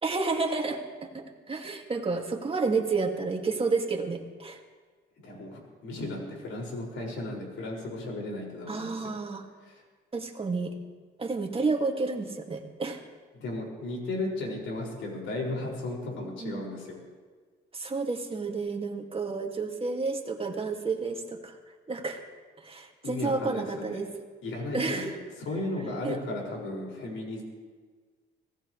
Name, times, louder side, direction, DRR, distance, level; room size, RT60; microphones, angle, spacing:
voice 1, 0.0-4.6 8.7-9.5 10.1-10.7 11.2-13.0 16.2-16.6 17.7-21.6 21.9-22.3 22.6-24.1 24.7-25.2 26.0-26.2, right 4 dB, 30° right, 3 dB, 2.2 m, -30 dB
voice 2, 5.2-9.1 9.7-9.8 13.3-17.0 23.0-24.0 24.4-25.2 25.5-27.4, left 2 dB, 80° left, -2 dB, 5.8 m, -35 dB
24.5 x 17.5 x 3.3 m, 1.5 s
cardioid pair, 90°, 20 cm